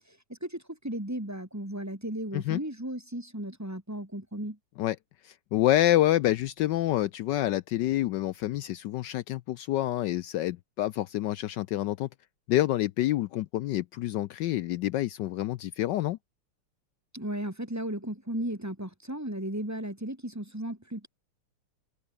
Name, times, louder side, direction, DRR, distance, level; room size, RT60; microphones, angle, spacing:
voice 1, 0.4-4.6 17.1-21.1, right 1 dB, 5° right, 2.4 m, -35 dB
voice 2, 5.2-12.1 12.5-16.2, left 14 dB, 75° left, 1.0 m, -27 dB
omnidirectional pair, 2.4 m